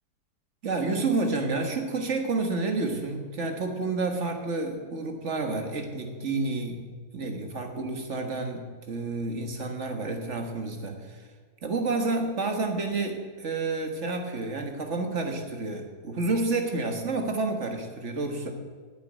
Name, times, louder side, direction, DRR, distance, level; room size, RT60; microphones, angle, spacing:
voice 1, 0.6-6.9 7.1-11.2 11.6-18.5, right 3 dB, 45° right, 4 dB, 1.8 m, -30 dB
9.7 x 8.3 x 9.0 m, 1.5 s
omnidirectional pair, 1.8 m